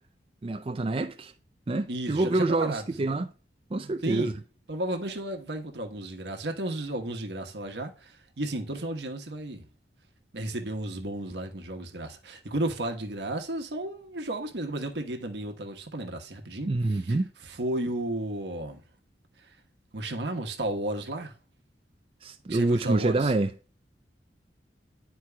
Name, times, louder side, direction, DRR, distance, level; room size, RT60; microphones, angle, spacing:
voice 1, 0.4-1.3 1.7-3.3 3.7-4.3 16.7-17.3 22.2-23.5, right 2 dB, 30° right, 0.4 m, -26 dB
voice 2, 1.9-3.3 4.0-4.3 4.7-9.7 10.3-17.2 17.5-18.8 19.9-21.3 22.5-23.3, right 1 dB, 80° right, 1.2 m, -33 dB
11.0 x 4.5 x 2.2 m
head